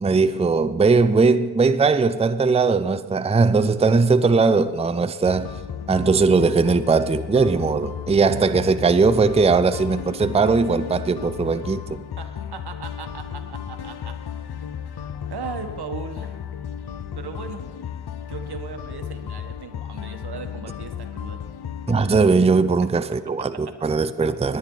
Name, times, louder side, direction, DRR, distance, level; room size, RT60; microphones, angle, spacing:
voice 1, 0.0-5.6 5.9-11.8 21.9-24.6, right 4 dB, 15° right, 0.5 m, -19 dB
sound 1, 5.2-22.3, left 8 dB, 70° left, 0.7 m, -34 dB
voice 2, 12.2-14.6 15.3-16.4 17.2-17.7 18.3-21.4 23.2-24.3, right 5 dB, 70° right, 1.4 m, -38 dB
20.0 x 10.0 x 3.9 m
wide cardioid pair, 80°, 40 cm